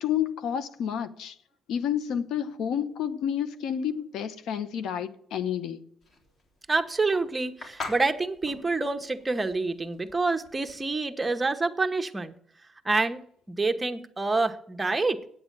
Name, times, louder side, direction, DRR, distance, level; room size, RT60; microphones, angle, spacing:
voice 1, 0.0-1.3 1.7-5.8, left 9 dB, 80° left, 0.9 m, -30 dB
sound 1, 6.0-11.0, left 3 dB, 55° left, 3.5 m, -42 dB
voice 2, 6.7-12.3 12.8-13.2 13.5-15.2, right 3 dB, 20° right, 1.0 m, -27 dB
9.2 x 7.9 x 8.8 m
cardioid pair, 90°, 0 cm